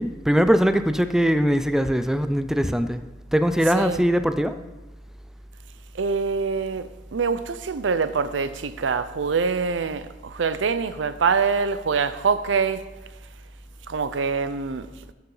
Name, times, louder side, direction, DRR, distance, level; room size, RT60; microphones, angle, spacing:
voice 1, 0.0-3.0 3.3-4.5, equal, 5° right, 0.3 m, -21 dB
voice 2, 5.9-12.8 13.9-14.9, right 5 dB, 85° right, 0.5 m, -25 dB
13.0 x 7.0 x 3.9 m
head